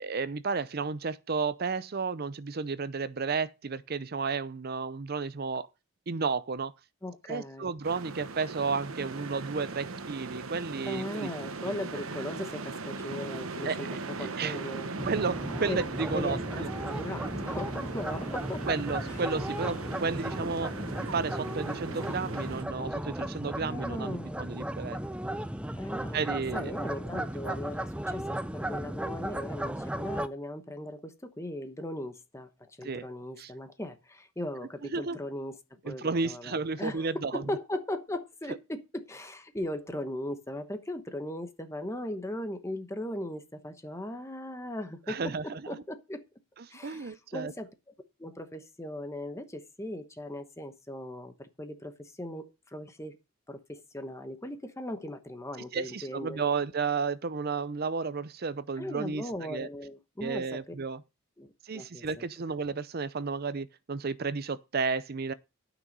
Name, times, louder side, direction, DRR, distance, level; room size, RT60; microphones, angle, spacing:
voice 1, 0.0-5.7 6.1-6.7 7.3-11.3 11.7-11.8 13.6-13.8 14.4-14.6 15.0-16.7 18.7-20.7 21.1-25.0 26.1-26.7 27.1-27.6 32.8-33.1 33.4-33.5 34.9-35.2 35.8-37.5 45.1-45.6 46.8-47.5 55.7-59.7 60.2-61.0 61.6-65.3, right 4 dB, 50° right, 0.6 m, -32 dB
voice 2, 7.0-7.7 10.9-13.9 14.2-14.9 15.7-15.8 16.1-16.7 16.9-18.6 19.1-19.2 23.6-24.5 25.8-26.2 26.5-35.6 35.8-46.2 46.7-47.7 48.2-53.2 53.5-56.4 58.8-60.7 61.4-62.2, left 1 dB, 15° left, 1.0 m, -38 dB
sound 1, 7.8-22.6, right 3 dB, 85° right, 1.0 m, -39 dB
sound 2, 15.0-30.3, right 1 dB, 5° right, 0.5 m, -35 dB
12.5 x 6.2 x 5.4 m
head